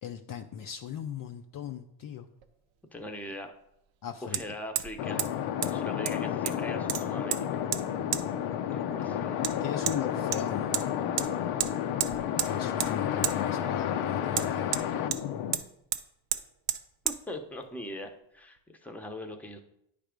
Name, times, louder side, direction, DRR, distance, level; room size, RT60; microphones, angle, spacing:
voice 1, 0.0-2.3 4.0-4.4 9.6-10.9 12.5-14.7, left 9 dB, 45° left, 6 dB, 0.5 m, -37 dB
Hammer, 2.4-2.5 4.3-4.4 4.8-4.9 5.2-5.3 5.6-5.7 6.1-6.6 6.9-7.4 7.7-7.8 8.1-8.2 9.4-9.5 9.9-10.0 10.3-10.9 11.2-11.3 11.6-11.7 12.0-12.5 12.8-12.9 13.2-13.4 14.3-15.2 15.5-15.7 15.9-16.0 16.3-16.4 16.7-16.8 17.1-17.2, right 11 dB, 60° right, 0.7 m, -30 dB
voice 2, 2.9-3.5 4.2-5.2 5.6-7.5 8.7-9.4 17.0-19.6, left 1 dB, 5° left, 4 dB, 0.7 m, -41 dB
sound 1, 5.0-15.6, left 9 dB, 75° left, 0.8 m, -31 dB
9.5 x 3.4 x 5.1 m, 0.77 s
cardioid pair, 105°, 49 cm